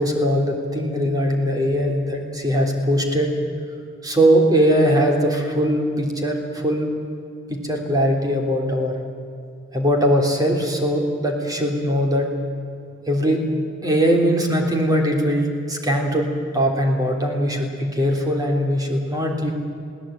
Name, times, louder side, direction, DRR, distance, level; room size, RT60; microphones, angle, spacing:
voice 1, 0.0-3.3 4.0-6.9 7.5-8.9 9.7-12.3 13.1-13.4 13.8-19.5, equal, 20° right, 1 dB, 3.3 m, -20 dB
21.0 x 18.0 x 8.9 m, 2.5 s
head